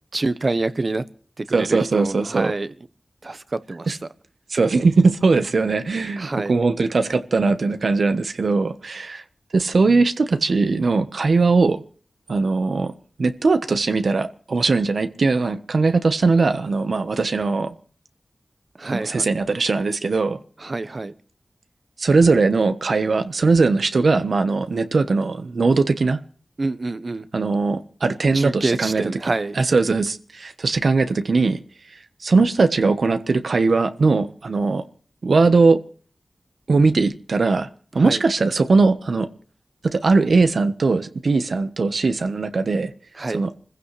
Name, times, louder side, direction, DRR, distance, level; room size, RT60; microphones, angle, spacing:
voice 1, 0.1-1.0 1.4-2.7 3.2-4.0 6.2-6.6 18.8-19.3 20.6-21.1 26.6-27.3 28.3-29.6 38.0-38.2 43.2-43.5, right 3 dB, 55° right, 1.0 m, -26 dB
voice 2, 1.5-2.5 3.9-4.0 4.5-9.2 9.5-11.8 12.3-12.9 13.2-17.7 18.9-20.4 22.0-26.2 27.3-29.0 29.5-31.6 32.2-34.8 35.2-35.8 36.7-37.7 37.9-39.3 39.8-42.9 43.3-43.5, right 3 dB, 80° right, 1.2 m, -20 dB
26.5 x 15.5 x 3.3 m
wide cardioid pair, 50°, 0 cm